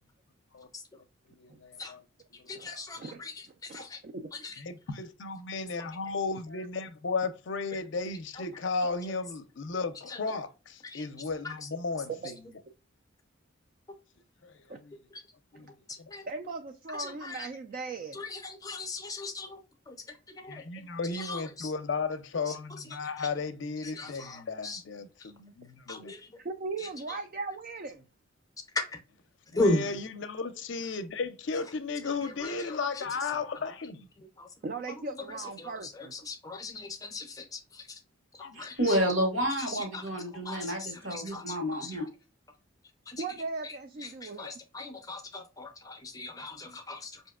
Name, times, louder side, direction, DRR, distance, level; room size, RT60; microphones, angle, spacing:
voice 1, 1.4-2.0 2.3-2.4 2.7-2.8 4.6-12.3 14.4-14.9 15.5-15.7 16.0-16.1 20.4-26.1 29.5-34.1 38.4-39.0, left 4 dB, 60° left, 0.5 m, -35 dB
voice 2, 2.5-4.0 4.3-4.5 10.1-10.2 10.8-11.0 11.4-11.5 16.1-16.3 17.0-17.5 18.1-19.6 19.9-20.0 20.4-20.6 21.1-21.7 22.5-22.6 23.2-23.3 23.8-24.8 25.9-26.4 28.9-29.0 29.5-29.9 32.4-32.5 33.0-33.1 34.4-34.5 35.6-38.0 38.6-39.0 39.7-39.8 40.4-42.0 43.1-43.2 43.6-43.8 44.0-47.2, left 2 dB, 15° left, 0.6 m, -37 dB
voice 3, 5.6-6.1 14.7-14.8 15.6-15.7 16.3-18.3 26.4-28.0 34.6-36.1 43.2-44.6, right 3 dB, 45° right, 0.3 m, -38 dB
voice 4, 38.5-42.1, equal, 80° right, 1.4 m, -30 dB
5.0 x 2.7 x 2.3 m
head